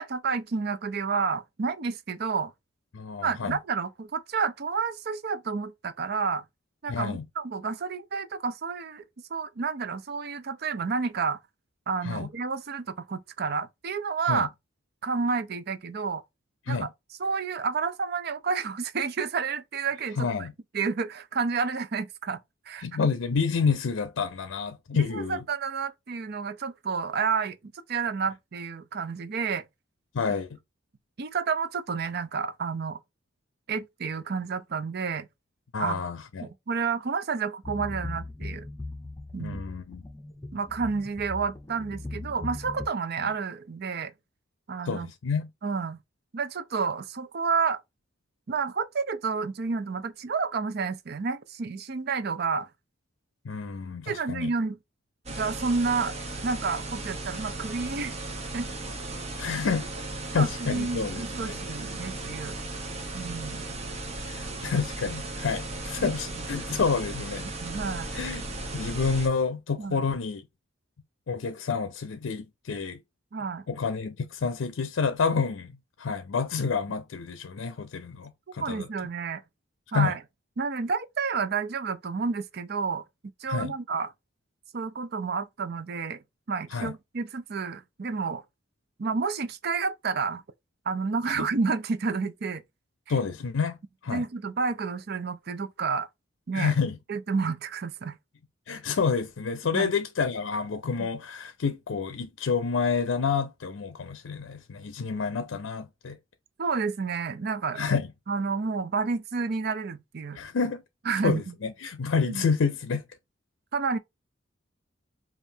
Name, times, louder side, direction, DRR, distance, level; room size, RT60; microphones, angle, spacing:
voice 1, 0.0-2.5 3.2-6.4 6.8-9.0 9.3-11.4 11.9-14.5 15.0-16.2 16.7-16.9 17.2-20.5 20.7-22.4 22.7-22.8 24.9-27.6 27.9-29.6 31.2-33.0 33.7-35.3 35.8-36.0 36.4-38.7 39.3-39.6 40.5-44.1 44.7-45.1 45.6-46.0 46.3-47.8 48.5-52.7 54.1-54.8 55.4-56.1 56.4-58.1 58.5-58.7 60.3-62.6 63.1-63.6 66.0-66.4 67.6-68.1 69.8-70.0 73.3-73.6 78.6-79.4 79.9-80.2 80.6-83.0 83.4-84.1 84.7-86.2 86.5-88.4 89.0-90.4 90.9-92.6 94.1-96.1 96.5-96.7 97.1-98.2 99.7-99.9 101.0-101.1 106.6-107.8 108.3-110.4 111.1-111.5 112.3-112.5 113.7-114.0, right 5 dB, 55° right, 0.5 m, -30 dB
voice 2, 2.9-3.6 6.9-7.2 12.0-12.3 14.3-14.5 16.7-16.9 20.2-20.5 22.8-25.4 30.1-30.6 35.7-36.5 39.4-40.0 44.8-45.5 53.4-54.5 59.4-59.9 60.3-61.6 64.2-67.5 68.1-70.4 71.3-73.0 73.7-75.7 76.0-78.9 79.9-80.2 83.5-83.7 86.7-86.9 91.4-91.5 93.1-93.8 94.0-94.2 96.5-97.0 98.7-106.2 107.8-108.1 110.3-110.8 111.2-113.0, left 5 dB, 85° left, 0.5 m, -29 dB
sound 1, 37.6-42.9, left 2 dB, 20° left, 0.7 m, -39 dB
sound 2, 55.3-69.3, right 2 dB, 35° right, 0.9 m, -36 dB
5.3 x 2.5 x 2.7 m
head